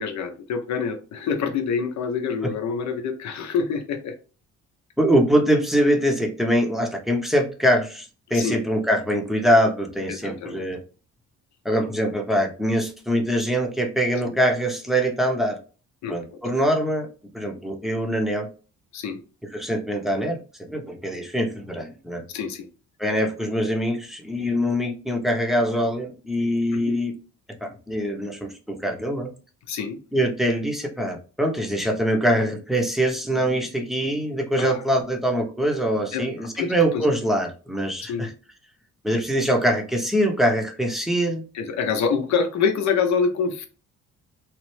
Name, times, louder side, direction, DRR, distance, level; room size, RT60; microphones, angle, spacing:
voice 1, 0.0-4.1 8.3-8.6 10.1-10.6 14.3-14.4 16.0-16.4 18.9-19.2 22.3-22.7 26.7-27.0 29.7-30.0 34.6-34.8 36.1-37.1 38.1-38.3 41.5-43.7, left 6 dB, 65° left, 6 dB, 0.7 m, -26 dB
voice 2, 5.0-10.8 11.6-15.6 16.1-17.1 17.3-18.5 19.5-22.2 23.0-27.1 27.6-29.3 30.1-38.3 39.0-41.4, equal, ahead, 2 dB, 0.7 m, -23 dB
3.2 x 2.0 x 3.1 m, 0.36 s
cardioid pair, 90°, 30 cm